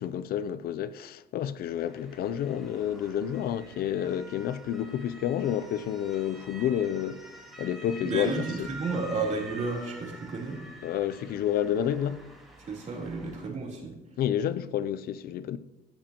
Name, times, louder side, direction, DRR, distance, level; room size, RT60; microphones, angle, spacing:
voice 1, 0.0-8.7 10.8-12.3 14.2-15.6, left 10 dB, 65° left, 0.5 m, -30 dB
Motor vehicle (road) / Siren, 1.7-13.5, right 1 dB, ahead, 3.1 m, -47 dB
voice 2, 8.0-10.6 12.7-13.9, right 3 dB, 45° right, 3.6 m, -32 dB
16.0 x 10.0 x 3.0 m
cardioid pair, 110°, 17 cm